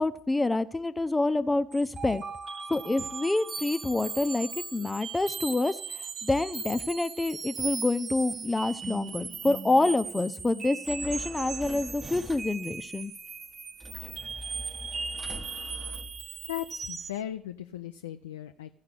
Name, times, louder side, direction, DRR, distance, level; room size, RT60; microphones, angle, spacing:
voice 1, 0.0-2.2 2.7-5.8 6.2-13.1, left 2 dB, 15° left, 12 dB, 0.8 m, -27 dB
sound 1, 1.7-17.2, right 5 dB, 35° right, 0.7 m, -38 dB
sound 2, 10.8-12.7 13.8-16.7, equal, 15° right, 1.2 m, -43 dB
voice 2, 16.5-18.7, left 12 dB, 80° left, 7 dB, 0.4 m, -37 dB
15.0 x 5.8 x 8.5 m, 0.64 s
figure-of-eight pair, 55°, 0 cm